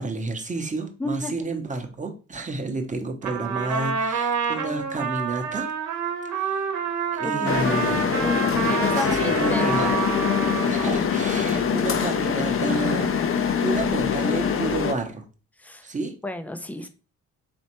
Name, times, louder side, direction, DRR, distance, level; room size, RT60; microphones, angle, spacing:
voice 1, 0.0-5.7 6.3-6.7 7.1-8.1 8.9-10.0 10.6-13.1 13.6-15.2 15.8-16.1 16.8-16.9, right 3 dB, 25° right, 5 dB, 0.9 m, -30 dB
voice 2, 1.0-1.3 7.2-7.5 7.9-9.9 15.6-15.8 16.2-16.9, left 1 dB, 5° left, 8 dB, 0.5 m, -32 dB
Trumpet, 3.2-11.1, right 6 dB, 70° right, 1.0 m, -28 dB
sound 1, 7.5-14.9, left 7 dB, 45° left, 0.6 m, -24 dB
4.3 x 3.1 x 3.0 m, 0.34 s
cardioid pair, 90°, 30 cm